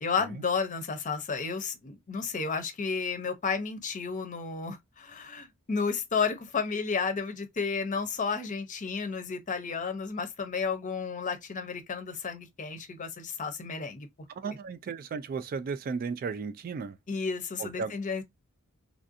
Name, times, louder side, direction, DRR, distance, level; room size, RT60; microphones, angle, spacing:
voice 1, 0.0-14.1 14.4-14.6 17.1-18.2, left 5 dB, 35° left, 0.6 m, -32 dB
voice 2, 14.3-17.0 17.6-17.9, right 5 dB, 40° right, 0.3 m, -35 dB
3.3 x 2.5 x 2.5 m
head